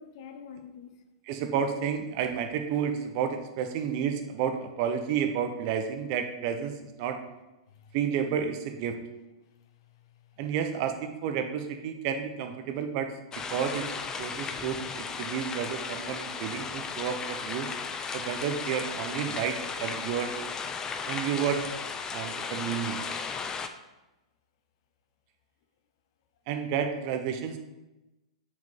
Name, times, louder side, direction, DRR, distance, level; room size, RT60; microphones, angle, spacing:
voice 1, 0.0-1.1 7.7-8.0 9.5-10.4, left 6 dB, 55° left, 0.9 m, -49 dB
voice 2, 1.3-7.2 7.9-9.0 10.4-13.1 13.5-13.9 14.2-17.7 18.1-20.3 21.1-21.6 22.1-23.0 26.5-27.6, right 8 dB, 45° right, 0.9 m, -31 dB
sound 1, 13.3-23.7, left 5 dB, 20° left, 0.6 m, -35 dB
6.5 x 5.1 x 5.6 m
figure-of-eight pair, 100°, 3 cm